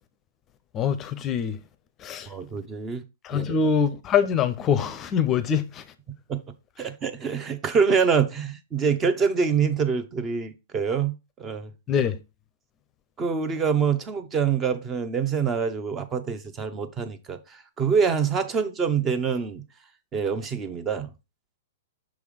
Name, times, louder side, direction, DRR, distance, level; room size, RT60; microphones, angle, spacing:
voice 1, 0.7-1.6 2.0-2.3 3.2-5.8 11.9-12.2, left 7 dB, 30° left, 0.6 m, -24 dB
voice 2, 2.3-3.0 3.3-3.6 6.3-6.4 6.8-11.1 11.4-11.7 13.2-17.4 17.8-19.6 20.1-21.1, right 6 dB, 25° right, 0.8 m, -25 dB
6.1 x 3.5 x 4.9 m
hypercardioid pair, 120°, 0 cm